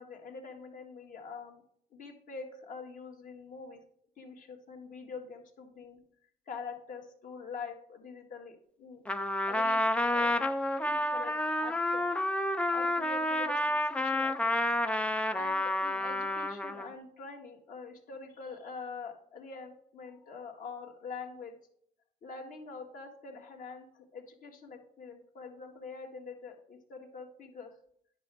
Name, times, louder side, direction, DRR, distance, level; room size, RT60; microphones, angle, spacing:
voice 1, 0.0-1.6 1.9-3.8 4.2-6.0 6.5-9.0 9.5-9.8 10.1-10.4 10.8-12.1 12.7-14.5 15.3-21.6 22.2-27.7, left 4 dB, 55° left, 2 dB, 1.8 m, -45 dB
Trumpet, 9.1-16.9, left 1 dB, 5° left, 0.5 m, -30 dB
10.0 x 6.0 x 3.4 m, 0.68 s
cardioid pair, 110°, 17 cm